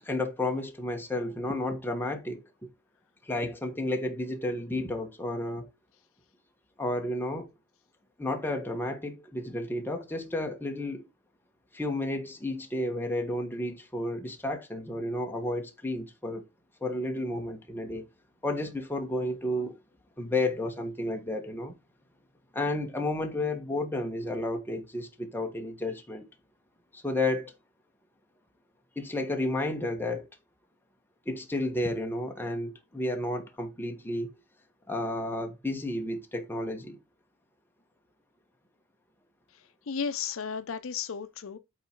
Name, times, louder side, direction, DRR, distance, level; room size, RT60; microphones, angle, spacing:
voice 1, 0.0-2.7 3.2-5.7 6.8-7.5 8.2-11.1 11.7-16.5 16.8-18.0 18.4-19.8 20.2-21.7 22.5-26.2 26.9-27.5 28.9-30.3 31.2-34.3 34.9-37.0, left 1 dB, 10° left, 1.3 m, -32 dB
voice 2, 39.5-41.6, left 6 dB, 65° left, 0.6 m, -34 dB
8.9 x 3.8 x 4.5 m
head